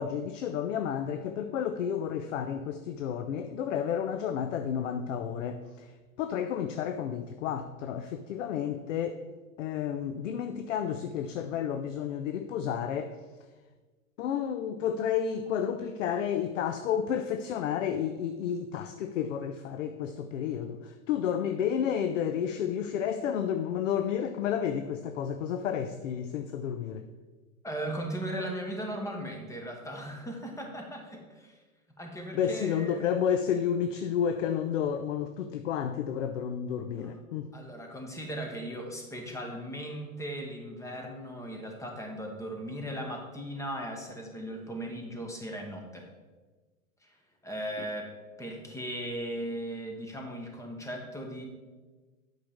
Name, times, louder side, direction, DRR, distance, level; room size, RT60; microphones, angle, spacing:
voice 1, 0.0-5.9 6.2-9.2 9.6-13.2 14.2-27.1 32.3-37.5, left 8 dB, 65° left, 9 dB, 0.6 m, -31 dB
voice 2, 27.6-31.6 32.0-33.1 37.0-37.1 37.5-46.1 47.0-47.1 47.4-48.1 48.4-51.4, right 1 dB, 5° left, 2 dB, 1.2 m, -37 dB
8.5 x 5.7 x 3.6 m, 1.3 s
figure-of-eight pair, 95°, 41 cm